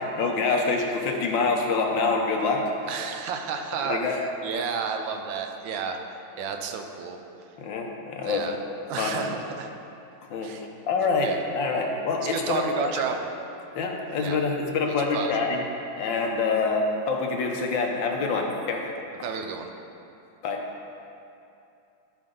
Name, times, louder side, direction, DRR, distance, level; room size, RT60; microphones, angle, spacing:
voice 1, 0.0-2.6 3.9-4.2 7.6-8.5 9.0-9.3 10.3-10.5 10.9-11.3 11.5-13.0 13.7-15.6 16.0-18.8 20.4-20.6, left 4 dB, 80° left, 1 dB, 1.6 m, -26 dB
voice 2, 2.9-6.0 6.4-7.2 8.2-8.6 8.9-9.7 10.4-10.6 11.2-11.4 12.3-13.3 14.2-14.6 15.1-15.5 19.2-19.7, right 6 dB, 85° right, 4 dB, 1.5 m, -31 dB
14.0 x 5.3 x 3.9 m, 2.7 s
omnidirectional pair, 2.1 m